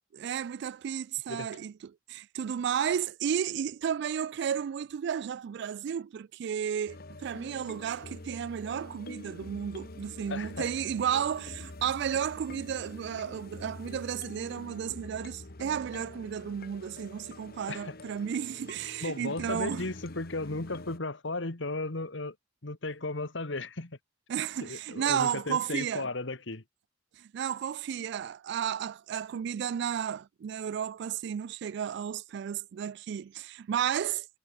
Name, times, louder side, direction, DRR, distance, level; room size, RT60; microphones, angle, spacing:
voice 1, 0.2-19.9 24.3-26.1 27.2-34.3, right 8 dB, 60° right, 0.3 m, -33 dB
sound 1, 6.9-21.0, left 2 dB, 50° left, 1.7 m, -46 dB
voice 2, 10.3-10.7 17.7-18.0 19.0-22.4 22.6-24.0 24.6-26.6, left 2 dB, 65° left, 1.9 m, -35 dB
head